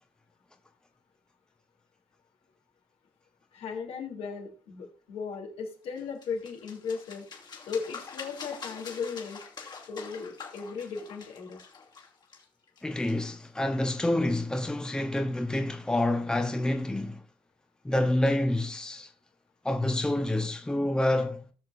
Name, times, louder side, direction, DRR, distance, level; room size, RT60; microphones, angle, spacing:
voice 1, 3.5-7.2 7.7-9.4 9.9-11.6, left 5 dB, 75° left, 3.1 m, -36 dB
sound 1, 6.0-13.5, left 5 dB, 45° left, 2.5 m, -45 dB
voice 2, 12.8-17.2 17.8-19.1 19.6-21.4, left 1 dB, 5° left, 0.9 m, -28 dB
18.5 x 6.4 x 2.6 m
cardioid pair, 115°, 10 cm